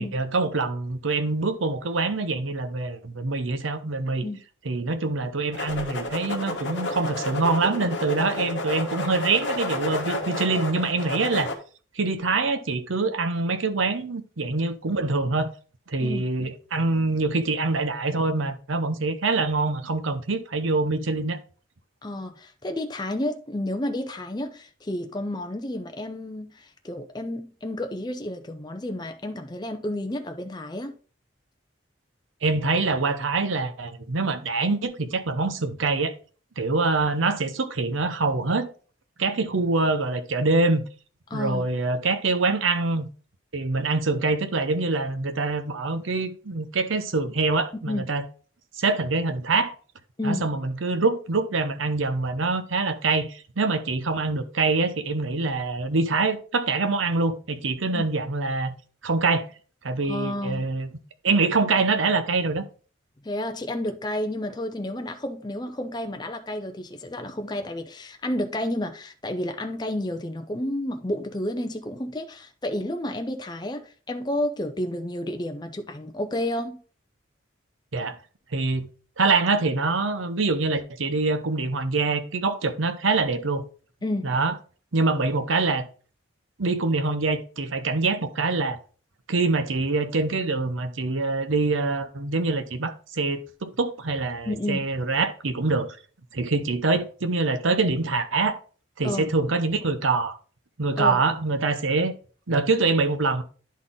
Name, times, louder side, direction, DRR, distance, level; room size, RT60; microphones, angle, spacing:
voice 1, 0.0-4.3 4.6-11.5 11.9-15.5 15.9-21.4 32.4-36.1 36.6-38.7 39.2-40.8 41.3-43.1 43.5-48.2 48.8-49.8 50.2-58.7 59.0-59.5 59.8-60.9 61.2-62.6 77.9-78.2 78.5-78.9 79.2-83.6 84.2-84.5 84.9-85.9 86.6-88.8 89.3-96.0 96.3-98.6 99.0-100.4 100.8-102.1 102.5-103.4, right 3 dB, 85° right, 0.9 m, -25 dB
sound 1, 5.5-11.5, left 1 dB, 60° left, 1.3 m, -31 dB
voice 2, 22.0-30.9 41.3-41.6 47.9-48.1 50.2-50.5 57.9-58.0 60.0-60.7 63.2-76.8 84.0-84.4 94.5-94.9 99.0-99.3 101.0-101.2, left 1 dB, 20° left, 0.5 m, -31 dB
10.5 x 4.1 x 3.7 m
head